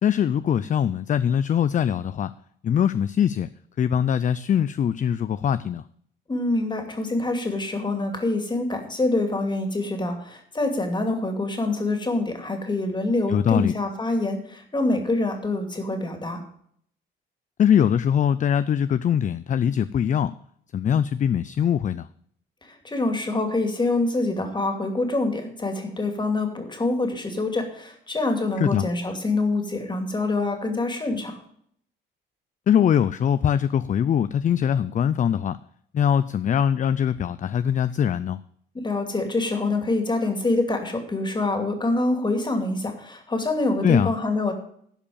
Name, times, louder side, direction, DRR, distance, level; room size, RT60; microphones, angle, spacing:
voice 1, 0.0-2.3 2.6-3.5 3.8-5.8 13.3-13.7 17.6-20.3 20.7-22.1 28.6-28.8 32.7-35.6 35.9-38.4 43.8-44.1, left 8 dB, 40° left, 15 dB, 0.4 m, -22 dB
voice 2, 6.3-16.4 22.6-31.4 38.7-44.5, left 2 dB, 20° left, 5 dB, 2.6 m, -25 dB
12.0 x 5.0 x 8.7 m, 0.66 s
cardioid pair, 90°, 20 cm